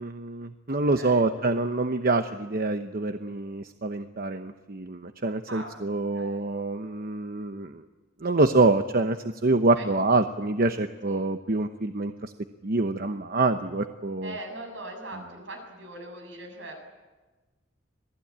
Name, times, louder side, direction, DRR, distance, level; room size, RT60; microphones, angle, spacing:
voice 1, 0.0-7.7 8.2-12.3 12.6-14.3, right 3 dB, 50° right, 8 dB, 0.9 m, -26 dB
voice 2, 0.7-1.3 5.5-6.5 9.7-9.9 11.1-11.3 14.2-16.8, right 1 dB, 70° right, 3 dB, 7.5 m, -41 dB
26.5 x 18.5 x 8.8 m, 1.2 s
head